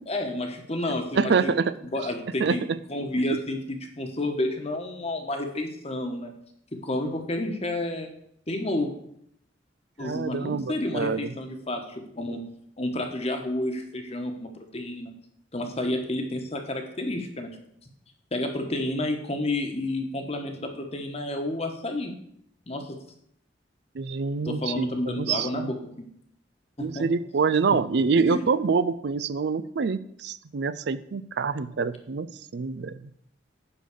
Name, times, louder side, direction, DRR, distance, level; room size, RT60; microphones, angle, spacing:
voice 1, 0.1-1.5 1.9-6.3 6.8-8.1 8.5-8.9 10.0-12.4 12.8-15.1 15.5-17.5 18.3-22.1 22.7-22.8 24.4-26.0 26.8-27.0 28.3-28.4, left 1 dB, 35° left, 4 dB, 1.3 m, -30 dB
voice 2, 1.1-1.7 2.4-2.8 10.0-11.3 23.9-25.7 26.8-32.3 32.5-33.1, right 5 dB, 60° right, 14 dB, 0.4 m, -26 dB
10.0 x 4.0 x 6.6 m, 0.70 s
head